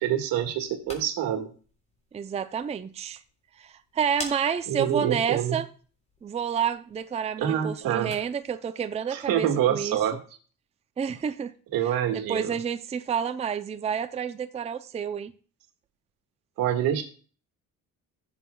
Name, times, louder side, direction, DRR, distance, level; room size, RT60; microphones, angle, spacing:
voice 1, 0.0-1.5 4.7-5.6 7.4-8.1 9.1-10.2 11.7-12.6 16.6-17.0, right 10 dB, 85° right, 1.8 m, -26 dB
sound 1, 0.6-8.5, left 1 dB, 20° left, 3.4 m, -47 dB
voice 2, 2.1-3.2 3.6-5.7 6.2-10.0 11.0-11.5 11.8-15.3, right 7 dB, 20° right, 0.4 m, -30 dB
16.5 x 7.5 x 2.3 m
cardioid pair, 130°, 34 cm